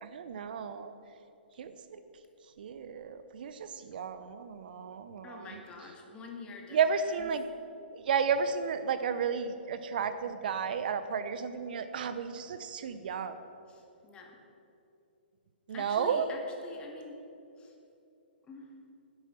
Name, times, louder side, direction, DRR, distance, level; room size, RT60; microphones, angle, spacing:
voice 1, 0.0-0.9 1.6-2.0 2.6-5.5 6.7-7.5 7.9-13.4 15.7-16.3, right 6 dB, 55° right, 10 dB, 0.8 m, -32 dB
voice 2, 5.2-7.3 13.7-14.4 15.7-17.2 17.6-17.7 18.5-18.7, left 3 dB, 15° left, 2 dB, 1.9 m, -46 dB
10.5 x 10.0 x 7.4 m, 2.8 s
hypercardioid pair, 130°, 6 cm